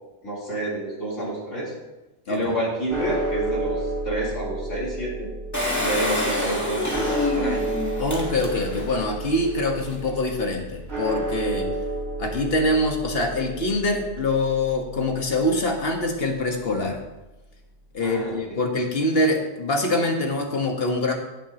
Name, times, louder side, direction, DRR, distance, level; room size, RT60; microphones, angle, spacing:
voice 1, 0.2-1.7 2.3-5.3 5.8-7.6 18.0-18.6, right 1 dB, 75° left, -6 dB, 4.2 m, -29 dB
sound 1, 2.9-17.1, right 1 dB, 55° right, 3.3 m, -32 dB
Engine, 5.5-9.0 9.5-9.6 9.8-9.9, left 2 dB, 15° left, 1.8 m, -27 dB
voice 2, 8.0-11.7 12.2-17.0 17.9-21.1, left 1 dB, 50° left, 2 dB, 1.7 m, -24 dB
16.5 x 8.3 x 3.0 m, 1.0 s
omnidirectional pair, 1.3 m